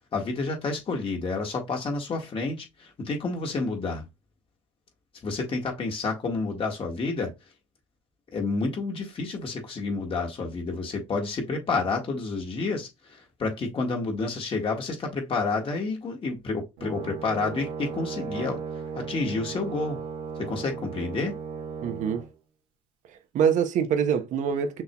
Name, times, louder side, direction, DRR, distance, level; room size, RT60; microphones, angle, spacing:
voice 1, 0.1-4.0 5.2-7.3 8.3-18.6 19.0-20.0 20.4-21.4, left 3 dB, 40° left, 1.7 m, -29 dB
Brass instrument, 16.8-22.3, right 6 dB, 85° right, 1.2 m, -36 dB
voice 2, 21.8-22.3 23.3-24.8, right 7 dB, 60° right, 0.9 m, -24 dB
6.1 x 2.7 x 2.3 m
hypercardioid pair, 65°, 14 cm